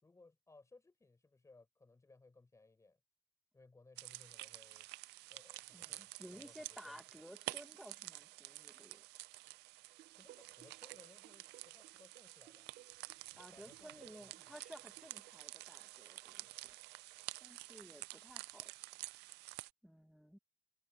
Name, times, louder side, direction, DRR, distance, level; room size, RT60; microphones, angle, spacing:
voice 1, 0.0-3.0 3.5-4.9 5.3-6.5 6.8-7.0 10.1-12.7 13.5-13.9 14.2-14.5, left 3 dB, 15° left, 6.7 m, -64 dB
sound 1, 4.0-19.7, right 20 dB, 90° right, 0.5 m, -50 dB
voice 2, 5.7-9.1 13.3-16.7 17.4-18.7 19.8-20.4, equal, ahead, 1.4 m, -56 dB
sound 2, 9.9-15.3, right 13 dB, 70° right, 7.7 m, -63 dB
cardioid pair, 110°, 17 cm